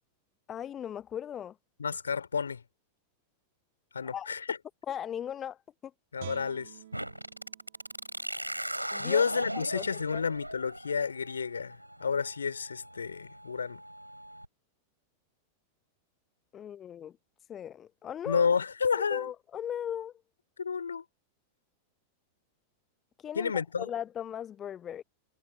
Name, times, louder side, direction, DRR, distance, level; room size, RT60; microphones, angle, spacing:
voice 1, 0.5-1.5 4.0-4.3 4.9-5.6 8.9-9.2 9.5-9.9 10.1-10.2 16.5-17.2 17.5-18.5 18.9-20.1 23.2-25.0, left 9 dB, 25° left, 0.7 m, -38 dB
voice 2, 1.8-2.6 3.9-4.6 6.1-6.7 9.0-13.8 18.3-19.3 20.6-21.0 23.3-23.9, left 6 dB, 75° left, 2.9 m, -30 dB
Guitar, 6.2-9.3 9.7-9.9, right 12 dB, 60° right, 1.9 m, -50 dB
sound 1, 6.9-14.4, right 1 dB, 90° right, 4.8 m, -39 dB
figure-of-eight pair, 90°, 0 cm